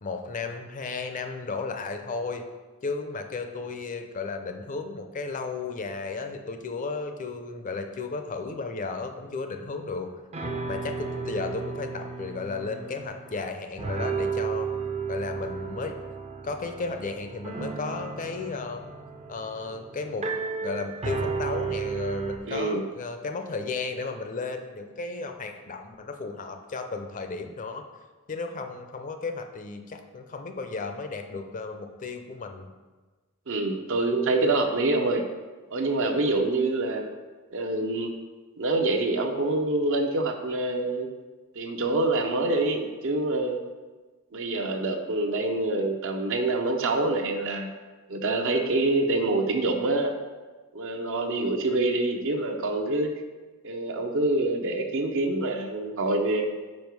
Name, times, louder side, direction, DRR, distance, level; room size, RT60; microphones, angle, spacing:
voice 1, 0.0-2.4 2.8-10.1 10.7-14.7 15.1-15.9 16.4-18.8 19.3-20.2 20.6-27.8 28.3-32.7, left 4 dB, 35° left, 6 dB, 0.5 m, -34 dB
sound 1, 10.0-10.1 10.3-13.5 13.8-22.4, right 5 dB, 30° right, 0.5 m, -33 dB
voice 2, 22.4-22.8 33.5-35.2 35.7-37.1 37.5-38.1 38.6-41.1 41.6-43.6 44.3-47.7 48.1-50.1 50.7-53.1 53.6-56.5, right 2 dB, 65° right, 4 dB, 0.7 m, -26 dB
5.3 x 4.8 x 4.6 m, 1.3 s
head